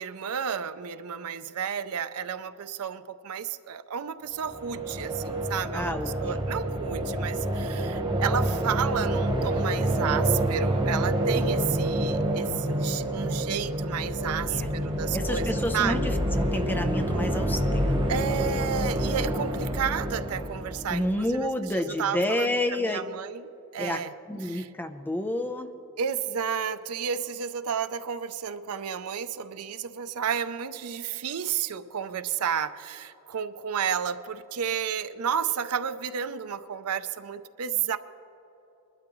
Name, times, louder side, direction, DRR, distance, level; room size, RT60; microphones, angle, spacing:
voice 1, 0.0-15.5 15.7-16.0 18.1-23.5 23.7-24.1 24.4-24.7 26.0-38.0, right 7 dB, 80° right, 12 dB, 0.5 m, -32 dB
sound 1, 4.4-21.4, right 1 dB, 20° right, 1.1 m, -28 dB
voice 2, 5.7-6.5 14.4-14.7 15.1-18.0 20.9-23.0 23.8-25.7, left 1 dB, 10° left, 7 dB, 0.6 m, -30 dB
22.0 x 12.0 x 3.1 m, 3.0 s
head